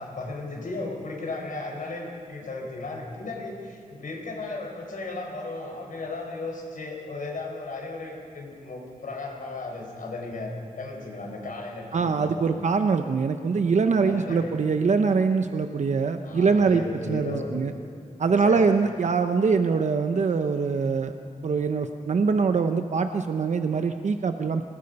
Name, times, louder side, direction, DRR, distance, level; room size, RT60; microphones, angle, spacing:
voice 1, 0.0-12.5 14.0-14.5 16.2-17.6 18.4-19.0, left 2 dB, 75° left, 0 dB, 5.0 m, -35 dB
voice 2, 11.9-16.8 17.1-17.7 18.2-21.1 21.4-24.6, right 5 dB, 60° right, 7 dB, 0.8 m, -23 dB
27.0 x 20.0 x 5.4 m, 2.5 s
wide cardioid pair, 150°, 14 cm